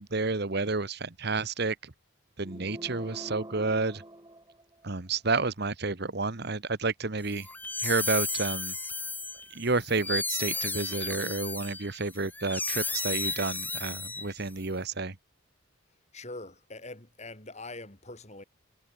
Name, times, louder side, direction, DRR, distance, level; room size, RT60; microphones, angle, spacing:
voice 1, 0.0-1.9 2.4-4.0 4.8-7.5 7.8-8.7 9.5-15.1, right 3 dB, 50° right, 1.3 m, -30 dB
sound 1, 2.4-5.1, right 1 dB, 20° right, 4.5 m, -45 dB
sound 2, 7.3-14.6, left 3 dB, 10° left, 2.7 m, -34 dB
voice 2, 16.1-18.4, left 2 dB, 35° left, 4.2 m, -43 dB
head